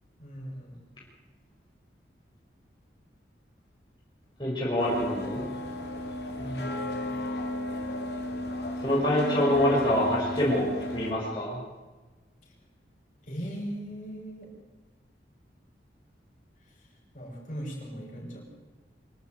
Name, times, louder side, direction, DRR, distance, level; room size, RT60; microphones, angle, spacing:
voice 1, 0.2-0.8 6.4-7.1 13.2-14.5 16.7-16.9 17.1-18.4, equal, 45° left, -2 dB, 7.1 m, -38 dB
voice 2, 4.4-5.4 8.8-11.6, equal, 25° left, -6 dB, 5.5 m, -26 dB
sound 1, 4.8-11.1, left 1 dB, 70° left, 4.0 m, -33 dB
25.5 x 12.0 x 9.3 m, 1.3 s
head